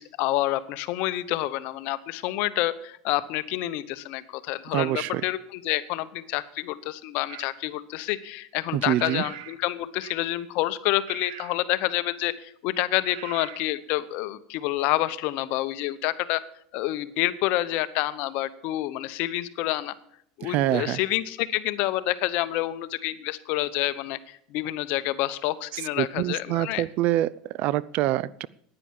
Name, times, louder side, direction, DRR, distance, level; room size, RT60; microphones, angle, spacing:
voice 1, 0.0-16.4 16.7-19.9 20.4-26.8, left 16 dB, 60° left, 14 dB, 0.9 m, -28 dB
voice 2, 4.7-5.2 8.7-9.2 20.4-21.0 25.7-28.5, right 14 dB, 55° right, 21 dB, 0.5 m, -26 dB
sound 1, 7.3-7.5 9.0-9.6 10.0-10.3 11.1-11.6 13.0-13.6, right 11 dB, 75° right, 1.0 m, -41 dB
10.0 x 9.7 x 7.5 m, 0.68 s
supercardioid pair, 120°, 3 cm